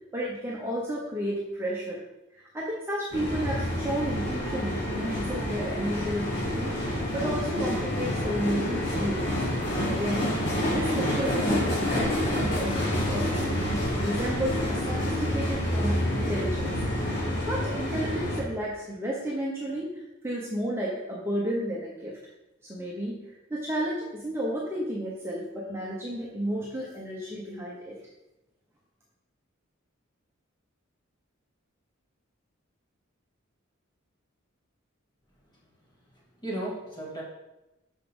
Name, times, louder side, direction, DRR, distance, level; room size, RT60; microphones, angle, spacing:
voice 1, 0.1-2.0 2.3-6.8 7.1-9.4 9.8-10.3 10.7-16.7 17.5-22.2 22.6-23.2 23.5-28.0, equal, 10° right, -4 dB, 1.0 m, -32 dB
sound 1, 3.1-18.4, left 1 dB, 60° left, 2.8 m, -28 dB
voice 2, 36.1-37.2, right 1 dB, 20° left, -4 dB, 2.4 m, -35 dB
6.3 x 5.6 x 5.4 m, 0.96 s
head